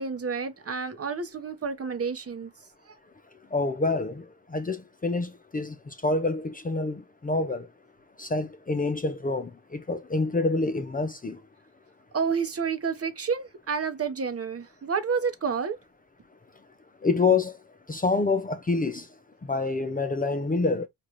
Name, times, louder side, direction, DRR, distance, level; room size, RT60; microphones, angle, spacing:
voice 1, 0.0-2.5 2.9-3.0 12.1-15.8, right 5 dB, 35° right, 0.9 m, -29 dB
voice 2, 3.5-7.7 8.2-11.4 17.0-17.6 17.9-19.1 19.5-20.9, left 3 dB, 20° left, 0.6 m, -27 dB
4.8 x 2.5 x 3.0 m
supercardioid pair, 65°, 43 cm